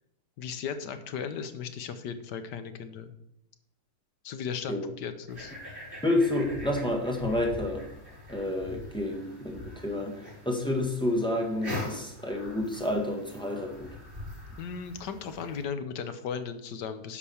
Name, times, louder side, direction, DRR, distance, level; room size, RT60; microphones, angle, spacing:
voice 1, 0.4-3.1 4.2-5.5 14.6-17.2, left 6 dB, 75° left, 10 dB, 1.5 m, -36 dB
sound 1, 5.3-15.6, left 1 dB, 30° right, 4.7 m, -43 dB
voice 2, 6.0-7.9 8.3-13.9, left 1 dB, 5° left, 0 dB, 1.5 m, -29 dB
10.0 x 5.0 x 7.0 m, 0.82 s
omnidirectional pair, 1.9 m